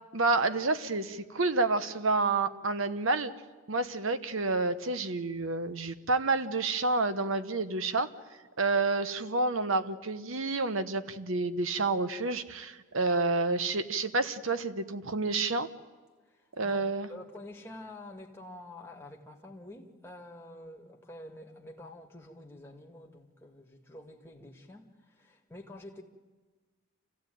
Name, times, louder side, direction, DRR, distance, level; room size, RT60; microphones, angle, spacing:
voice 1, 0.1-3.3 3.7-8.1 8.6-15.7 16.6-17.1, right 3 dB, 70° right, 1.1 m, -29 dB
voice 2, 16.3-16.8 17.1-26.0, left 1 dB, 10° left, 2.0 m, -48 dB
27.5 x 16.0 x 9.3 m
head